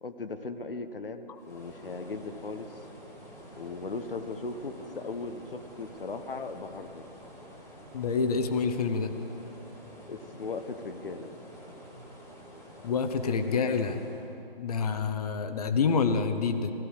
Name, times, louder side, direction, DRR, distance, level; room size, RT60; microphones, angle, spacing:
voice 1, 0.0-2.8 3.6-7.0 10.0-11.3, left 3 dB, 65° left, 8 dB, 1.1 m, -38 dB
sound 1, 1.4-14.3, equal, 10° left, 2.2 m, -49 dB
voice 2, 7.9-9.1 12.8-14.0 14.6-16.7, left 5 dB, 40° left, 8 dB, 1.1 m, -27 dB
17.0 x 15.0 x 4.9 m, 2.7 s
figure-of-eight pair, 135°, 30 cm